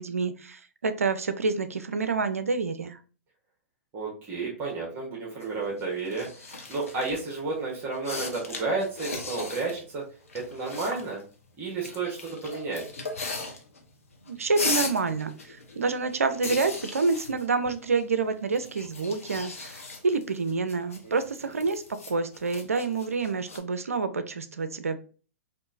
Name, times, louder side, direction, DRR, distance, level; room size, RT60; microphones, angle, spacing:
voice 1, 0.0-3.0 14.3-25.0, right 4 dB, 85° right, 11 dB, 0.4 m, -28 dB
voice 2, 3.9-10.0 10.3-11.2 11.6-12.8 21.0-21.1, right 3 dB, 30° right, -3 dB, 1.2 m, -32 dB
sound 1, 5.4-7.3 7.8-9.8 10.1-11.2 11.8-13.9 14.1-18.2 18.5-23.6, left 3 dB, 80° left, 0.8 m, -37 dB
3.5 x 2.6 x 2.6 m, 0.38 s
figure-of-eight pair, 110°, 8 cm